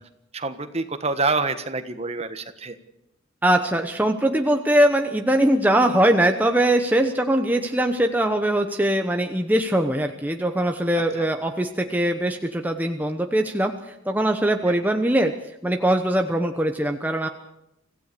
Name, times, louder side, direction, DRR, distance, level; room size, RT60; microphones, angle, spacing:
voice 1, 0.3-2.8 11.1-11.3 14.7-14.8, right 3 dB, 35° right, 9 dB, 1.3 m, -27 dB
voice 2, 3.4-15.3 15.6-17.3, right 1 dB, 10° right, 4 dB, 0.9 m, -21 dB
25.5 x 16.0 x 6.8 m, 0.86 s
head